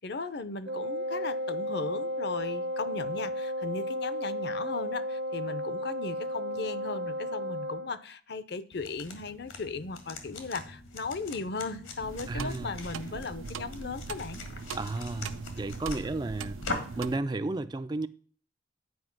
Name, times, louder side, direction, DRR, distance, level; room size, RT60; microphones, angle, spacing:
voice 1, 0.0-14.4, left 3 dB, 55° left, 0.7 m, -37 dB
Wind instrument woodwind instrument, 0.6-7.9, equal, 55° right, 0.7 m, -33 dB
sound 1, 8.7-17.1, left 3 dB, 80° left, 1.8 m, -42 dB
sound 2, 12.0-17.2, right 5 dB, 90° right, 0.5 m, -40 dB
voice 2, 12.3-12.7 14.7-16.6 17.0-18.1, right 2 dB, 20° right, 0.3 m, -33 dB
9.5 x 5.0 x 6.0 m
head